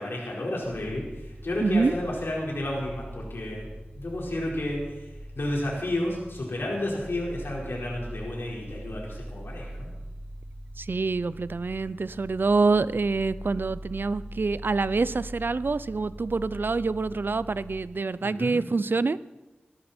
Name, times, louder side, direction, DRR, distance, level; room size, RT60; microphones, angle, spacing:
voice 1, 0.0-3.7 4.0-5.0 5.3-9.9 18.2-18.6, left 1 dB, 85° left, -3 dB, 4.5 m, -31 dB
sound 1, 0.6-17.8, right 1 dB, 45° right, 4.1 m, -42 dB
voice 2, 1.6-1.9 10.8-19.2, right 3 dB, 65° right, 17 dB, 0.5 m, -26 dB
17.0 x 14.0 x 4.4 m, 1.1 s
wide cardioid pair, 65°, 4 cm